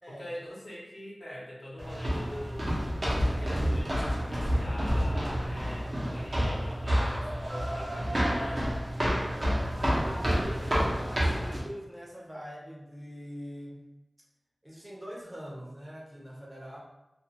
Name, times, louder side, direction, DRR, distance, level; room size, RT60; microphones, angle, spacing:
voice 1, 0.1-2.7 3.2-8.7, equal, 80° left, -6 dB, 0.8 m, -44 dB
sound 1, 1.8-11.6, equal, 50° right, 0.7 m, -29 dB
voice 2, 9.3-13.9 14.6-16.8, equal, 15° right, -4 dB, 0.7 m, -43 dB
2.4 x 2.2 x 2.8 m, 0.96 s
wide cardioid pair, 60°, 0 cm